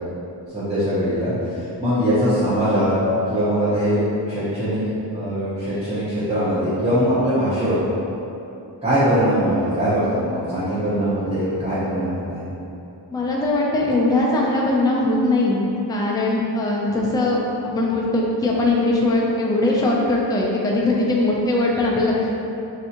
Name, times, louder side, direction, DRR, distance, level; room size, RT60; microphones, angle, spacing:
voice 1, 0.5-2.9 3.3-4.8 5.1-7.8 8.8-12.4, equal, 15° right, -14 dB, 0.8 m, -21 dB
voice 2, 13.1-22.3, left 2 dB, 10° left, -4 dB, 0.4 m, -20 dB
3.3 x 2.7 x 2.8 m, 2.9 s
wide cardioid pair, 90°, 43 cm